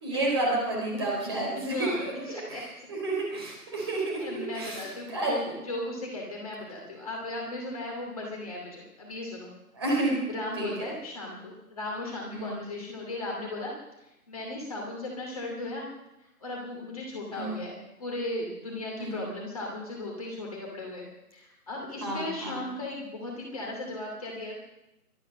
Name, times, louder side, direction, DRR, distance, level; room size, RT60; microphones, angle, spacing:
voice 1, 0.0-2.1 2.5-5.3 9.7-10.2 10.5-10.9 12.3-12.5 17.3-17.6 19.0-19.2 22.0-22.6, right 2 dB, 15° right, -3 dB, 3.8 m, -30 dB
voice 2, 1.7-2.9 4.2-9.6 10.3-13.7 14.0-15.9 16.4-24.5, left 2 dB, 25° left, -2 dB, 2.6 m, -36 dB
24.0 x 9.1 x 6.3 m, 0.93 s
figure-of-eight pair, 175°, 47 cm